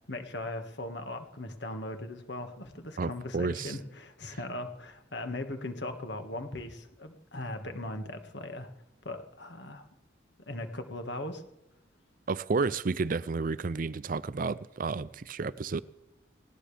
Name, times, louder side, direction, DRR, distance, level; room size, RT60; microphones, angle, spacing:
voice 1, 0.1-8.7 9.1-9.9 10.5-11.4, left 1 dB, 60° left, 1.8 m, -39 dB
voice 2, 3.0-3.8 12.3-15.8, right 4 dB, 45° right, 0.4 m, -31 dB
19.0 x 18.0 x 3.4 m
head